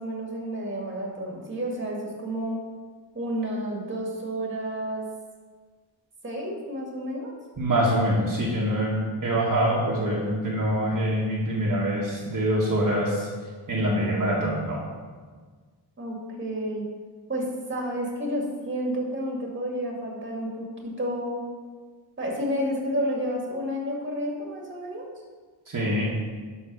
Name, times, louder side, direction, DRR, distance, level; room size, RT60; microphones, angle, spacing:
voice 1, 0.0-2.6 3.1-5.0 6.2-7.3 16.0-16.9 17.3-21.5 22.2-25.1, equal, 25° right, -1 dB, 2.0 m, -30 dB
voice 2, 7.6-13.3 13.7-14.8 25.7-26.0, right 1 dB, 45° right, -6 dB, 1.6 m, -25 dB
11.5 x 4.1 x 6.2 m, 1.5 s
wide cardioid pair, 145°, 43 cm